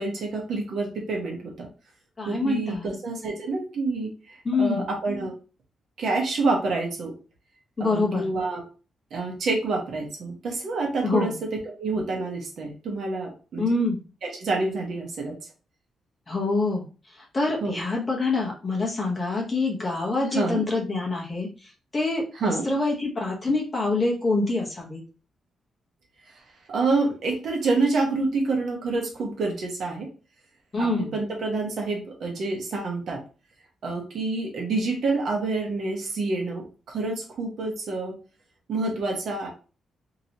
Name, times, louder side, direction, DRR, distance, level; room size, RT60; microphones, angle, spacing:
voice 1, 0.0-1.7 2.2-5.3 6.0-7.1 7.8-8.6 9.1-13.6 14.2-15.4 17.6-17.8 20.3-20.6 22.3-22.6 26.3-26.4 26.7-30.1 30.8-33.2 33.8-38.1 38.7-39.5, right 3 dB, 60° right, 0 dB, 1.0 m, -28 dB
voice 2, 2.2-2.9 4.4-4.8 7.8-8.2 11.0-11.4 13.6-14.0 16.3-16.8 17.3-25.0 30.7-31.1, left 3 dB, 25° left, -2 dB, 0.9 m, -26 dB
2.9 x 2.9 x 2.7 m, 0.36 s
wide cardioid pair, 150°, 0 cm